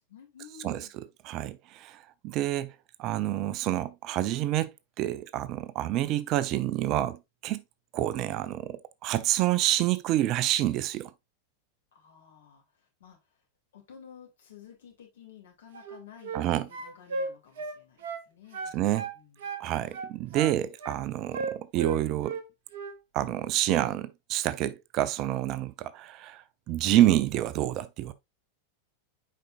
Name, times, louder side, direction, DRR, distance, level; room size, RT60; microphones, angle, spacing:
voice 1, 0.1-0.9 11.9-13.4 13.7-19.4, left 8 dB, 65° left, 2.5 m, -53 dB
voice 2, 0.6-2.7 3.0-7.6 7.9-11.1 16.3-16.7 18.7-19.1 19.6-22.4 23.1-28.1, right 13 dB, 40° right, 0.5 m, -28 dB
sound 1, 15.7-16.5 16.7-18.3 18.5-19.7 19.9-21.0 21.3-22.4 22.7-23.0, right 4 dB, 55° right, 1.0 m, -36 dB
7.6 x 5.1 x 2.5 m
figure-of-eight pair, 90°, 0 cm